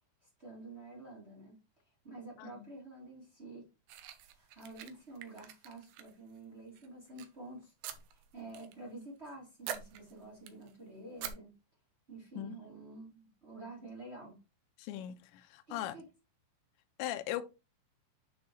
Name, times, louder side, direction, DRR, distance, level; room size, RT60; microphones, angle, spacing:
voice 1, 0.4-1.6 2.0-3.7 4.3-7.7 8.1-11.5 12.1-14.4 15.7-16.0, right 2 dB, 35° right, 1.0 m, -49 dB
voice 2, 2.4-2.7 12.4-12.6 14.8-15.9 17.0-17.4, left 13 dB, 80° left, 2.7 m, -39 dB
sound 1, 3.9-6.4 6.7-7.3 7.8-8.7 9.0-9.3 9.6-10.7 11.2-11.3, right 10 dB, 90° right, 2.2 m, -45 dB
9.5 x 4.0 x 3.1 m
omnidirectional pair, 5.8 m